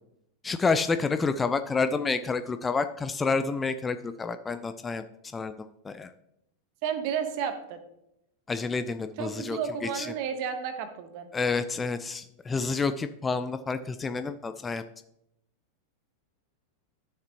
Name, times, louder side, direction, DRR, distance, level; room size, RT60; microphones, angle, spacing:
voice 1, 0.4-5.0 5.3-6.1 8.5-9.6 9.9-10.1 11.3-14.8, left 4 dB, 15° left, 10 dB, 0.4 m, -29 dB
voice 2, 6.8-7.8 9.2-11.3, right 7 dB, 45° right, 9 dB, 1.1 m, -32 dB
11.5 x 6.6 x 2.9 m, 0.79 s
figure-of-eight pair, 90°, 0 cm